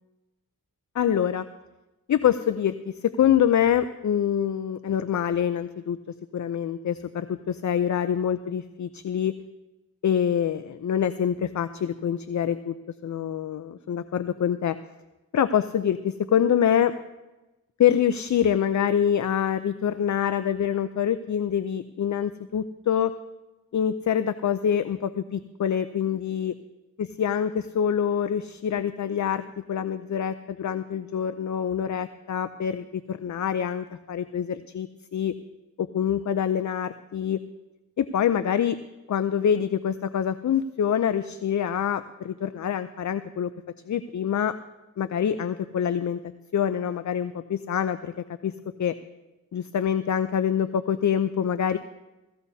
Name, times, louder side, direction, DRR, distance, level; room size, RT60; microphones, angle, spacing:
voice 1, 0.9-1.5 2.1-6.0 6.3-9.3 10.0-12.7 13.0-14.8 15.3-16.9 17.8-23.1 23.7-26.5 27.0-35.3 35.8-37.4 38.0-38.8 39.1-43.5 43.9-44.5 45.0-46.2 46.5-48.5 48.8-48.9 49.5-51.8, left 9 dB, 55° left, 12 dB, 0.6 m, -25 dB
16.5 x 15.5 x 2.8 m, 1.1 s
cardioid pair, 55°, 34 cm